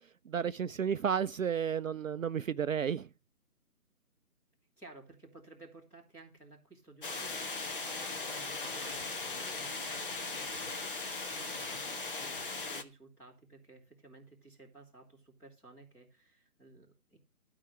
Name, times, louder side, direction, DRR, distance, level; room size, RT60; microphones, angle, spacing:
voice 1, 0.3-3.1, right 7 dB, 60° right, 0.5 m, -32 dB
voice 2, 4.8-17.2, right 2 dB, 5° left, 2.1 m, -56 dB
sound 1, 7.0-12.8, left 3 dB, 35° left, 1.1 m, -38 dB
12.5 x 4.8 x 7.2 m
figure-of-eight pair, 165°, 45 cm